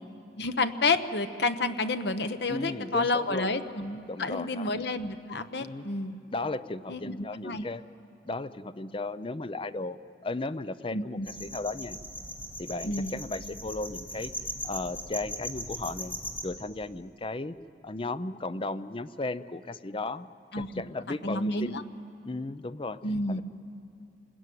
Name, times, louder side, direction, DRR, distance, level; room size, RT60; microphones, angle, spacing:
voice 1, 0.4-6.1 6.9-7.1 7.4-7.7 10.9-11.3 12.8-13.1 20.5-20.7 21.1-21.8 23.0-23.4, left 3 dB, 65° left, 10 dB, 1.0 m, -30 dB
voice 2, 2.5-3.5 4.1-4.7 5.6-5.8 6.3-7.8 8.2-12.0 12.6-14.3 14.6-16.2 16.4-17.6 17.8-20.3 20.6-21.8 22.2-23.0 23.3-23.4, left 2 dB, 30° left, 13 dB, 0.6 m, -35 dB
sound 1, 11.2-16.4, equal, 10° left, 2.6 m, -39 dB
27.5 x 20.5 x 9.4 m, 2.7 s
head